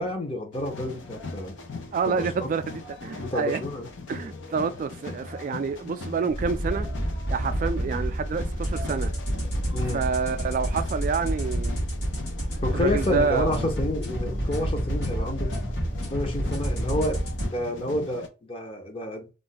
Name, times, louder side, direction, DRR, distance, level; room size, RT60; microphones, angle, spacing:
voice 1, 0.0-1.6 2.1-2.5 3.2-3.9 9.7-10.0 12.6-15.5 16.1-19.3, left 1 dB, 30° left, 0.8 m, -29 dB
sound 1, 0.5-18.3, left 3 dB, 80° left, 0.6 m, -39 dB
voice 2, 1.9-3.6 4.1-6.9 7.3-9.1 9.9-11.8 12.7-13.6, right 5 dB, 45° right, 0.3 m, -28 dB
sound 2, 6.3-17.5, right 1 dB, 65° left, 1.1 m, -29 dB
2.5 x 2.2 x 3.9 m
head